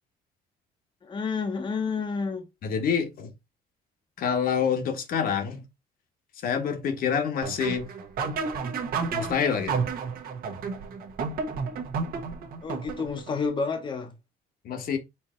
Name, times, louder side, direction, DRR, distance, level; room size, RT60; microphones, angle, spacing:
voice 1, 1.0-2.5 12.6-14.1, left 4 dB, 30° left, 0.8 m, -30 dB
voice 2, 2.6-3.3 4.2-5.6 6.4-7.9 9.1-9.9 14.6-15.0, left 7 dB, 60° left, 1.1 m, -27 dB
sound 1, 7.4-13.3, right 5 dB, 60° right, 1.1 m, -31 dB
4.5 x 2.7 x 4.2 m
cardioid pair, 110°, 17 cm